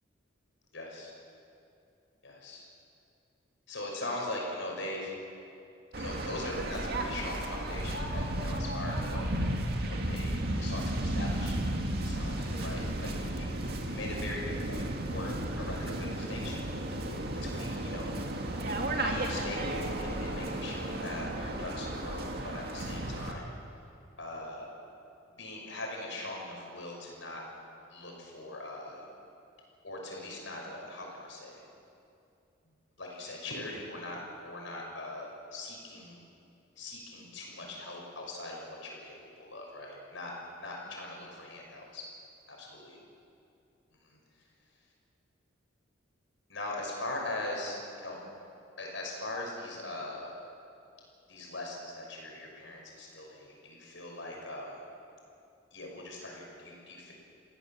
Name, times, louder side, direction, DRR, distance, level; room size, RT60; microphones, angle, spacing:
voice 1, 0.7-1.1 2.2-2.7 3.7-5.1 6.0-9.3 9.9-12.8 13.8-17.1 17.4-18.2 19.0-23.5 24.2-24.7 25.3-27.4 27.9-29.0 29.8-31.6 33.0-36.2 36.8-40.3 40.6-42.1 42.5-43.0 44.0-44.2 46.5-48.2 48.8-50.3 51.3-54.8 55.7-57.1, left 2 dB, 70° left, -1 dB, 6.1 m, -41 dB
Waves surf, 5.9-23.3, right 1 dB, 50° right, 2.1 m, -34 dB
28.0 x 16.5 x 7.4 m, 2.6 s
head